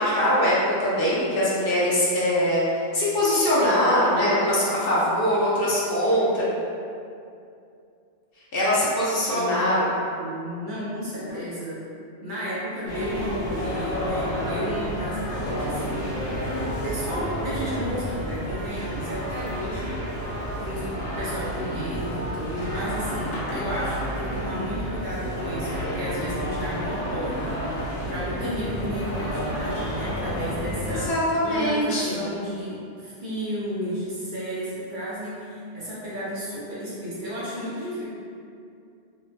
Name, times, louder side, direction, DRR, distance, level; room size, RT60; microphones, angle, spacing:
voice 1, 0.0-6.4 8.5-9.9 11.2-11.3 30.8-32.2, equal, 60° left, -8 dB, 0.8 m, -22 dB
voice 2, 9.3-9.7 10.2-11.8 12.2-16.1 16.6-20.0 20.6-31.1 31.4-38.0, equal, 55° right, -9 dB, 0.7 m, -33 dB
sound 1, 12.9-31.1, equal, 85° left, 1.0 m, -30 dB
2.9 x 2.2 x 2.5 m, 2.5 s
omnidirectional pair, 1.1 m